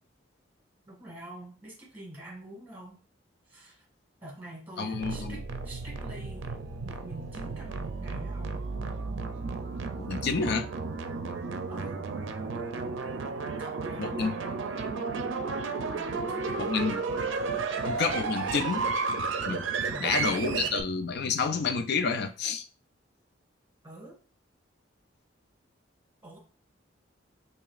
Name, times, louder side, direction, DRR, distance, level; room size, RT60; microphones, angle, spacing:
voice 1, 0.9-3.0 3.5-3.9 4.2-6.6 6.8-8.6 11.7-12.2 13.4-14.3 16.0-16.8 19.8-20.8 23.8-24.2 26.2-26.4, right 1 dB, 10° right, 1.8 m, -46 dB
voice 2, 4.8-5.4 10.0-10.7 14.0-14.3 16.6-17.0 17.8-18.8 19.4-19.7 20.0-22.7, left 5 dB, 60° left, 0.4 m, -29 dB
sound 1, 4.9-20.8, right 4 dB, 85° right, 0.5 m, -33 dB
4.8 x 2.9 x 2.4 m
head